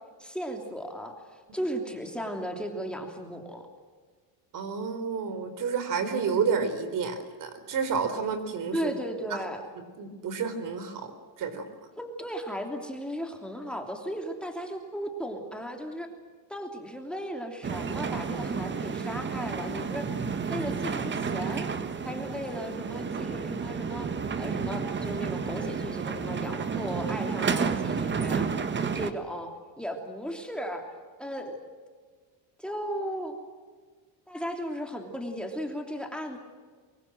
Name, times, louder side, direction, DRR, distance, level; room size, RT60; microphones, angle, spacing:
voice 1, 0.2-3.7 8.7-9.6 12.0-16.1 16.5-20.1 20.5-21.7 22.0-28.5 28.8-30.9 31.2-31.6 32.6-33.4 34.3-36.4, equal, ahead, 3 dB, 3.1 m, -36 dB
voice 2, 4.5-8.9 9.3-9.4 10.0-11.1 11.4-11.7, right 5 dB, 45° right, 9 dB, 4.4 m, -30 dB
sound 1, 17.6-29.1, right 5 dB, 25° right, 1.6 m, -31 dB
24.5 x 23.0 x 7.7 m, 1.5 s
cardioid pair, 140°, 44 cm